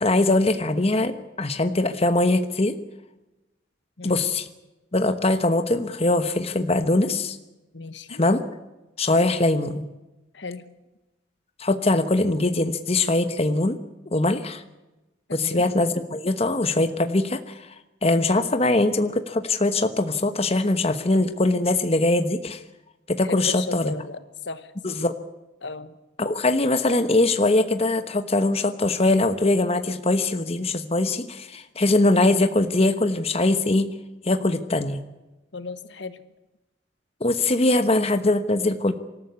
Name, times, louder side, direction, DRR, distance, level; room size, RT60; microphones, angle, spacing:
voice 1, 0.0-2.8 4.0-4.5 4.9-7.4 8.1-8.4 9.0-9.8 11.6-13.8 14.1-14.6 15.3-17.7 18.0-22.6 23.1-23.9 24.8-25.1 26.2-33.9 34.2-35.0 37.2-38.9, left 2 dB, 30° left, 9 dB, 1.1 m, -22 dB
voice 2, 7.7-8.2 10.3-10.6 15.3-15.6 23.2-24.7 25.6-26.0 35.5-36.2, left 4 dB, 65° left, 12 dB, 1.3 m, -36 dB
25.5 x 14.0 x 9.6 m, 1.0 s
head